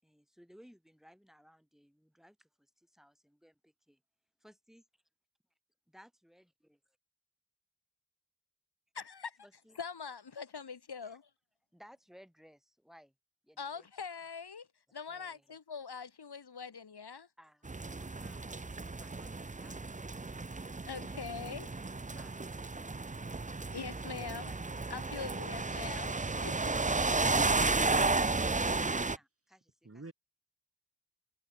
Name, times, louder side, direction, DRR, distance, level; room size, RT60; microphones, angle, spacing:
voice 1, 0.0-3.6 4.4-5.0 5.9-7.0 9.4-9.8 11.0-11.2 11.7-13.1 13.4-13.9 14.9-15.6 16.6-16.7 17.4-20.4 22.1-22.6 23.9-24.6 28.9-30.1, equal, ahead, 5.2 m, -61 dB
voice 2, 9.8-11.2 13.6-14.7 14.9-17.3 20.9-21.7 23.7-24.5 24.9-26.1 26.4-26.7, left 5 dB, 90° left, 2.0 m, -43 dB
sound 1, 17.7-29.2, right 3 dB, 20° right, 0.6 m, -33 dB
voice 3, 29.8-30.1, right 2 dB, 35° right, 3.4 m, -51 dB
wide cardioid pair, 70°, 38 cm